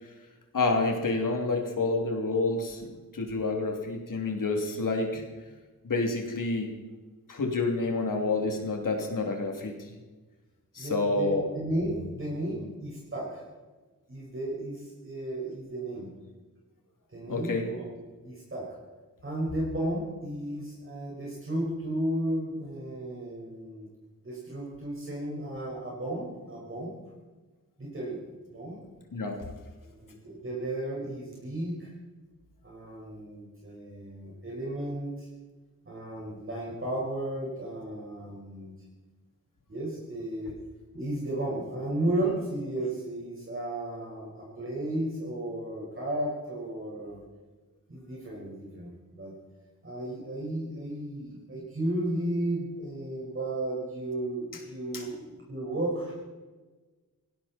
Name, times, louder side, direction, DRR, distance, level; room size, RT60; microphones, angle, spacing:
voice 1, 0.5-2.9 3.1-5.2 5.8-6.7 7.3-9.9 10.7-11.5 17.3-17.7 29.1-29.5 54.9-55.0, left 3 dB, 65° left, 2 dB, 3.0 m, -28 dB
voice 2, 10.8-13.4 14.1-16.1 17.1-18.0 18.2-18.7 19.2-23.9 24.2-26.9 27.8-28.2 28.5-28.8 29.9-31.9 32.6-35.3 35.9-38.7 39.7-40.5 40.9-47.2 47.9-49.3 49.8-56.2, right 1 dB, 35° right, -4 dB, 5.4 m, -34 dB
19.0 x 17.0 x 4.4 m, 1.3 s
wide cardioid pair, 115°, 35 cm